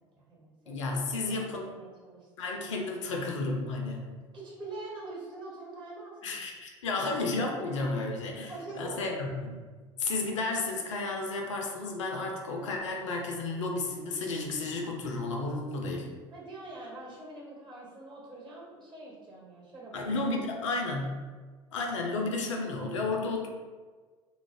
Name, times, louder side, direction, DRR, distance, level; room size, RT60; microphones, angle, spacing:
voice 1, 0.1-0.8 1.2-1.4 1.7-2.8 4.3-6.4 8.5-9.3 16.3-20.2 20.5-20.6, right 2 dB, 30° right, -5 dB, 1.1 m, -44 dB
voice 2, 0.7-1.8 2.4-4.1 6.2-9.6 10.0-16.1 19.9-21.2 21.7-23.5, left 3 dB, 75° left, 1 dB, 0.4 m, -32 dB
2.3 x 2.0 x 3.3 m, 1.4 s
figure-of-eight pair, 60°, 16 cm